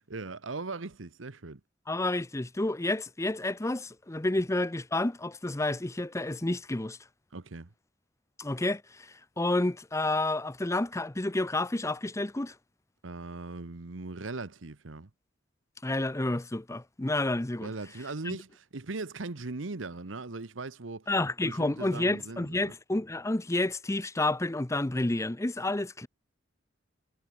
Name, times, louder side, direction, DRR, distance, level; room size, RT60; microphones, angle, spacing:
voice 1, 0.0-1.6 7.3-7.7 13.0-15.1 17.6-21.1 21.4-22.7, right 3 dB, 85° right, 1.1 m, -39 dB
voice 2, 1.9-7.0 8.4-12.5 15.8-17.7 18.3-18.4 21.1-26.1, left 2 dB, 15° left, 0.7 m, -30 dB
head